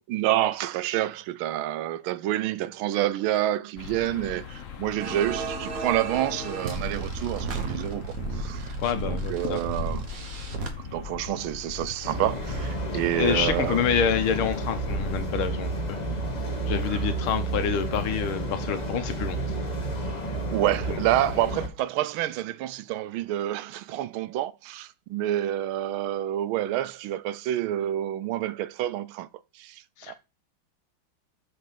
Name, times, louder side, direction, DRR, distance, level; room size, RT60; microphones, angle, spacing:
voice 1, 0.1-8.8 9.1-10.1 10.8-13.8 16.9-17.0 20.5-29.3 29.5-30.1, right 13 dB, 85° right, 1.4 m, -28 dB
sound 1, 3.8-15.2, left 7 dB, 55° left, 0.9 m, -39 dB
sound 2, 5.0-10.7, right 4 dB, 45° right, 1.5 m, -34 dB
voice 2, 8.8-9.6 12.9-16.0 16.7-19.4 30.0-30.1, left 7 dB, 85° left, 1.9 m, -27 dB
sound 3, 12.0-21.7, right 2 dB, 25° left, 1.2 m, -31 dB
6.5 x 5.2 x 5.7 m
omnidirectional pair, 2.2 m